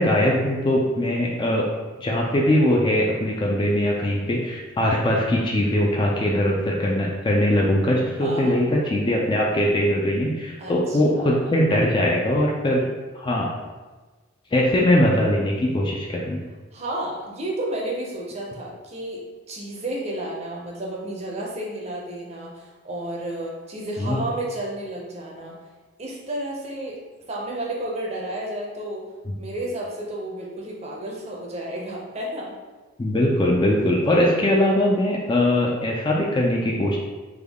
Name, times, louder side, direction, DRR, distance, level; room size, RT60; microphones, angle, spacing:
voice 1, 0.0-1.7 2.0-12.9 13.1-13.5 14.5-16.4 24.0-24.2 29.3-29.4 33.0-37.0, left 1 dB, 20° left, -2 dB, 0.3 m, -21 dB
voice 2, 8.2-8.7 10.6-11.5 16.7-19.2 19.5-25.5 26.0-27.0 27.3-29.0 29.4-32.5, right 1 dB, 30° right, -3 dB, 0.6 m, -32 dB
3.4 x 2.2 x 3.5 m, 1.3 s
head